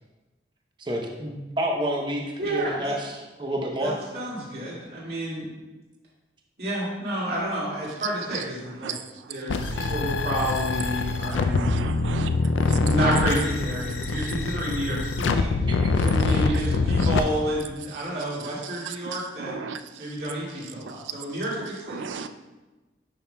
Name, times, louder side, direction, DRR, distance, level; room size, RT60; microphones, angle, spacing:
voice 1, 0.8-4.0 15.7-16.0, equal, 25° right, 0 dB, 0.7 m, -29 dB
voice 2, 2.4-3.0 3.8-5.5 6.6-9.0 9.3-11.7 12.6-15.5 15.9-19.6 20.0-22.1, right 1 dB, 55° right, -6 dB, 2.1 m, -30 dB
sound 1, 9.5-17.2, left 3 dB, 90° left, 0.4 m, -24 dB
voice 3, 11.6-12.3 19.7-19.8 22.0-22.3, right 5 dB, 85° right, 10 dB, 0.4 m, -34 dB
10.0 x 5.4 x 2.2 m, 1.2 s
head